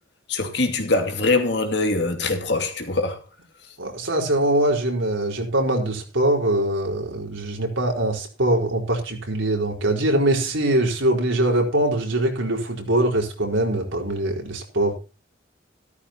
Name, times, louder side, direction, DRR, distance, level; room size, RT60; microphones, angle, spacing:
voice 1, 0.3-3.2, left 3 dB, 60° left, 2.5 m, -23 dB
voice 2, 3.8-15.0, right 1 dB, 90° right, 4.5 m, -22 dB
14.0 x 13.0 x 2.9 m
head